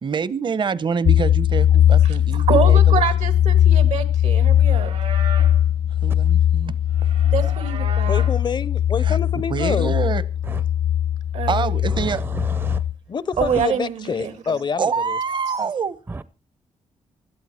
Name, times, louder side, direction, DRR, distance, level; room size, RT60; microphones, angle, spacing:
voice 1, 0.0-2.8 6.0-6.7 9.0-9.2 9.5-10.2 11.5-12.2 14.8-16.0, right 6 dB, 40° right, 0.8 m, -25 dB
sound 1, 1.0-12.9, left 10 dB, 75° left, 1.0 m, -19 dB
voice 2, 2.0-4.9 7.3-8.2 11.3-11.7 13.4-14.6, right 7 dB, 80° right, 1.9 m, -25 dB
Livestock farm animals working animals, 4.5-5.6 6.9-8.4, right 6 dB, 60° right, 1.1 m, -36 dB
voice 3, 8.0-9.9 13.1-15.2, left 6 dB, 40° left, 0.6 m, -27 dB
voice 4, 11.9-12.8 13.4-13.6 16.1-16.2, right 3 dB, 20° right, 0.6 m, -31 dB
16.5 x 12.0 x 4.3 m
cardioid pair, 105°, 12 cm